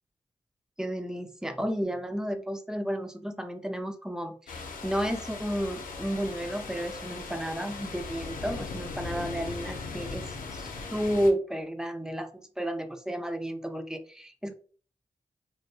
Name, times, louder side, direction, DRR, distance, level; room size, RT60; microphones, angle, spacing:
voice 1, 0.8-14.5, equal, 5° right, 7 dB, 0.4 m, -32 dB
sound 1, 4.5-11.3, left 4 dB, 80° left, 0.4 m, -39 dB
2.6 x 2.2 x 2.3 m, 0.41 s
cardioid pair, 40°, 14 cm